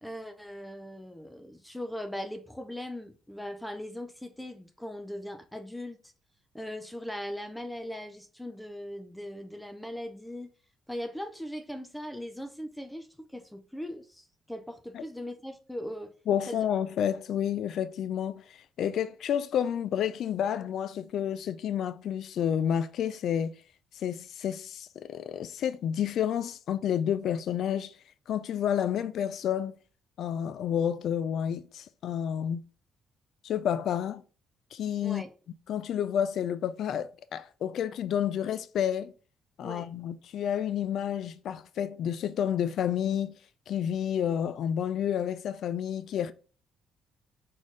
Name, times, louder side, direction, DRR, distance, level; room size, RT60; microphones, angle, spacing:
voice 1, 0.0-6.0 6.5-10.5 10.9-16.1 16.5-16.6 35.0-35.3 39.6-39.9, left 1 dB, 5° left, 0.5 m, -39 dB
voice 2, 16.3-23.5 23.9-27.9 28.3-29.7 30.2-32.6 33.4-34.2 34.7-35.2 35.7-39.1 39.6-43.4 43.7-46.3, left 9 dB, 65° left, 0.4 m, -30 dB
4.1 x 3.8 x 3.1 m
cardioid pair, 120°, 0 cm